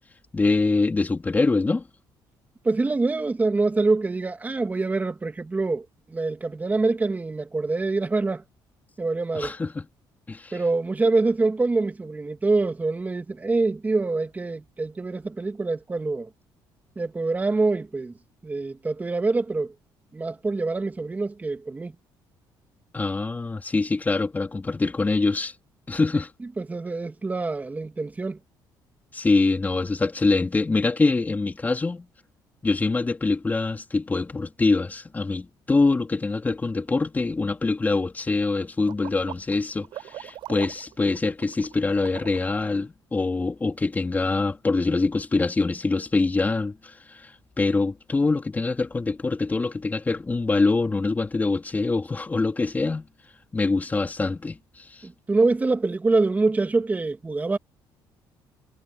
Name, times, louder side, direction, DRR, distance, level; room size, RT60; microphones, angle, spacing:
voice 1, 0.3-1.8 9.3-9.9 10.3-10.5 22.9-25.5 25.9-26.3 29.1-32.1 32.6-47.3 47.6-53.1 53.5-55.1, left 3 dB, 20° left, 3.9 m, -24 dB
voice 2, 2.6-8.4 9.0-9.6 10.5-16.3 17.0-18.1 18.4-19.7 20.1-22.0 26.6-28.4 55.0-57.6, right 3 dB, 20° right, 2.6 m, -25 dB
sound 1, 38.8-42.7, right 13 dB, 75° right, 7.8 m, -41 dB
cardioid pair, 115°, 8 cm